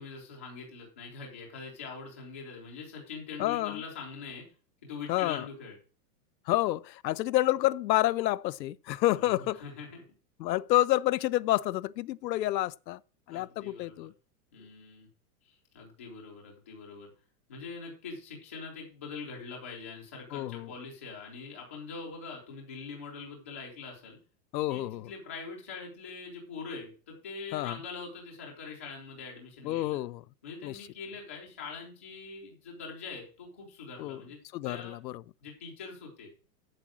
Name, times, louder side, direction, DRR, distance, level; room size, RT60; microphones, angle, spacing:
voice 1, 0.0-4.5 4.8-5.8 9.2-10.0 13.3-14.1 14.5-15.1 15.4-17.1 17.5-24.2 24.7-30.0 30.4-34.4 34.6-35.0 35.4-36.3, left 4 dB, 10° left, 0.4 m, -43 dB
voice 2, 3.4-3.8 5.1-5.5 6.5-9.6 10.4-13.0 13.3-14.1 20.3-20.7 24.5-25.1 27.5-27.8 29.6-30.2 30.6-30.8 34.0-34.2 34.5-35.2, left 16 dB, 90° left, 0.7 m, -29 dB
7.8 x 7.8 x 6.2 m
supercardioid pair, 175°, 50 cm